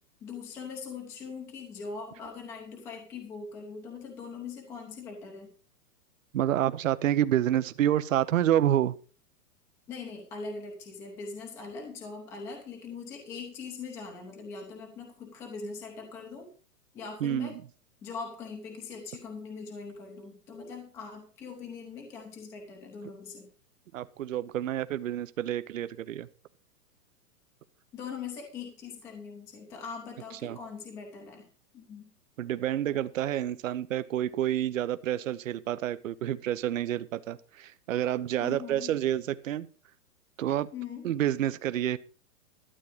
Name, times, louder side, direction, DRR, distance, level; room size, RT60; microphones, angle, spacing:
voice 1, 0.2-5.5 9.9-16.5 16.9-17.6 18.0-23.5 27.9-31.5 31.7-32.1 38.4-39.0 40.7-41.1, left 5 dB, 5° left, 0.8 m, -41 dB
voice 2, 6.3-9.0 17.2-17.6 23.9-26.3 30.4-30.6 32.4-39.7 40.4-40.7 41.0-42.0, right 11 dB, 55° right, 0.8 m, -28 dB
12.5 x 8.7 x 4.9 m
hypercardioid pair, 175°, 47 cm